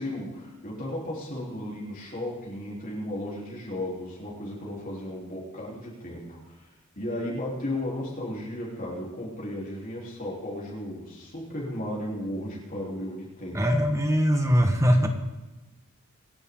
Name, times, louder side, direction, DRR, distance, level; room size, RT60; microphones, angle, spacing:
voice 1, 0.0-6.7 7.0-13.8 15.0-15.1, left 1 dB, 40° left, -5 dB, 3.8 m, -35 dB
voice 2, 13.5-15.1, equal, 15° right, 4 dB, 1.5 m, -21 dB
26.5 x 11.0 x 3.9 m, 1.1 s
head